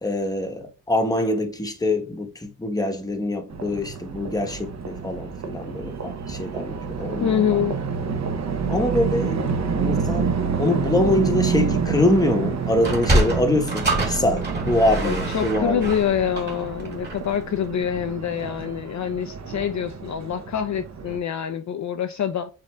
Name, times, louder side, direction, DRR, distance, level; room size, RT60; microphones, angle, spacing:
voice 1, 0.0-7.6 8.7-16.0, left 1 dB, 10° left, 0.9 m, -24 dB
sound 1, 3.5-21.2, right 6 dB, 45° right, 0.8 m, -28 dB
voice 2, 7.2-7.8 15.0-22.5, left 9 dB, 50° left, 0.5 m, -25 dB
Sliding door, 12.7-17.4, right 1 dB, 25° right, 1.8 m, -25 dB
7.4 x 2.6 x 2.2 m
cardioid pair, 85°, 37 cm